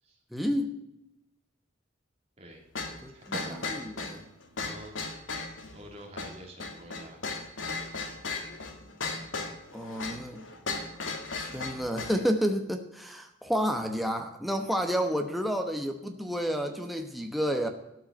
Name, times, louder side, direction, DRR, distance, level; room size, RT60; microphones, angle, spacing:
voice 1, 0.3-0.7 3.0-4.2 9.7-10.4 11.4-17.7, equal, ahead, 4 dB, 1.0 m, -30 dB
sound 1, 2.8-12.2, left 3 dB, 75° left, 2.0 m, -36 dB
Drum, 3.3-5.6, right 2 dB, 50° right, 1.1 m, -46 dB
voice 2, 4.6-5.0 5.7-7.2, equal, 35° right, 0 dB, 3.1 m, -48 dB
13.0 x 5.6 x 8.6 m, 0.86 s
head